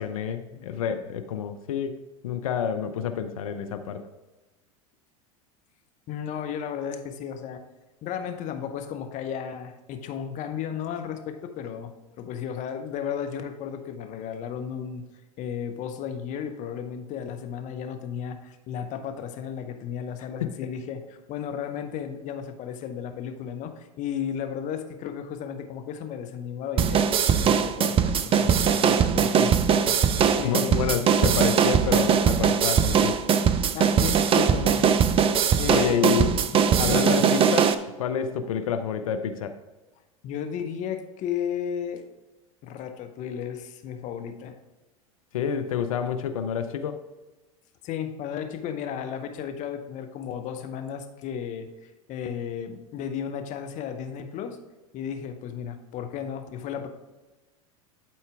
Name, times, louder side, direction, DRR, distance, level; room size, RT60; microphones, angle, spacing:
voice 1, 0.0-4.0 20.4-20.5 28.6-28.8 29.9-33.2 35.7-36.4 36.8-39.5 45.3-47.0, left 8 dB, 75° left, 8 dB, 0.7 m, -29 dB
voice 2, 6.1-7.6 8.0-15.1 15.4-27.0 27.3-30.9 33.7-34.9 35.6-36.6 37.0-37.1 40.2-42.0 42.6-44.6 47.8-54.6 54.9-56.9, left 8 dB, 45° left, 7 dB, 1.1 m, -34 dB
sound 1, 26.8-37.7, right 7 dB, 30° right, 0.6 m, -21 dB
11.5 x 4.4 x 3.5 m, 1.1 s
hypercardioid pair, 85°, 18 cm